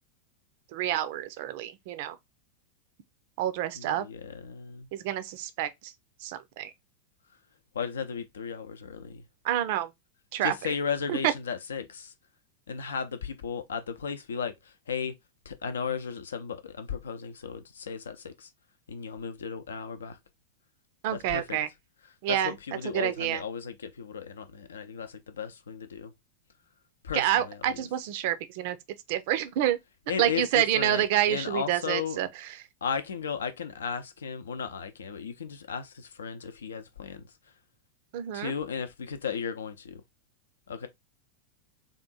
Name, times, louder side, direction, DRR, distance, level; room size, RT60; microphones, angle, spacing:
voice 1, 0.7-2.2 3.4-4.1 4.9-5.9 6.2-6.7 9.4-9.9 10.3-10.7 11.1-11.3 21.0-21.7 22.2-22.6 22.9-23.4 27.1-28.8 29.1-29.8 30.2-32.6 38.1-38.5, right 12 dB, 50° right, 0.5 m, -28 dB
voice 2, 3.8-4.9 7.7-9.2 10.4-12.1 12.7-14.5 14.9-15.1 15.5-18.5 18.9-20.2 21.3-21.6 22.3-26.1 27.0-27.6 30.1-32.2 32.8-37.2 38.3-40.0 40.7-40.9, left 6 dB, 65° left, 0.6 m, -35 dB
3.6 x 2.5 x 4.0 m
figure-of-eight pair, 90°, 0 cm